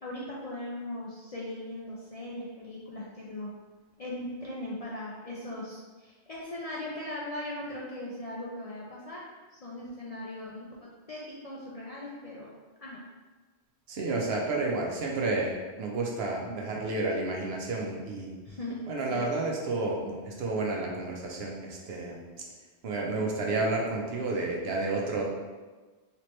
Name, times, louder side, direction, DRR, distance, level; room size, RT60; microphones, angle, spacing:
voice 1, 0.0-3.5 4.0-9.3 9.5-12.5 12.8-13.0 18.4-19.3, left 1 dB, 50° left, -5 dB, 0.4 m, -39 dB
voice 2, 13.9-18.3 18.9-22.2 22.8-25.2, right 2 dB, 70° right, -1 dB, 0.9 m, -31 dB
3.3 x 2.9 x 3.1 m, 1.3 s
omnidirectional pair, 1.1 m